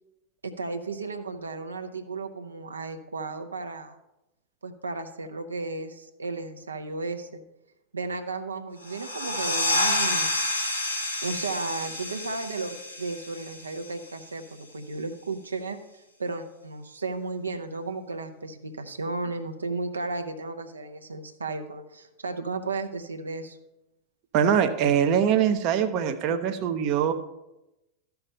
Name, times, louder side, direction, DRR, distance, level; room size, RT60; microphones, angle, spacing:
voice 1, 0.4-4.0 4.6-7.4 7.9-10.3 11.2-23.6, right 3 dB, 75° right, 6 dB, 0.7 m, -34 dB
sound 1, 8.8-14.2, left 1 dB, 90° left, 1.5 m, -29 dB
voice 2, 24.3-27.1, right 8 dB, 40° right, 8 dB, 0.7 m, -23 dB
13.0 x 5.8 x 5.3 m, 0.94 s
figure-of-eight pair, 90°, 0 cm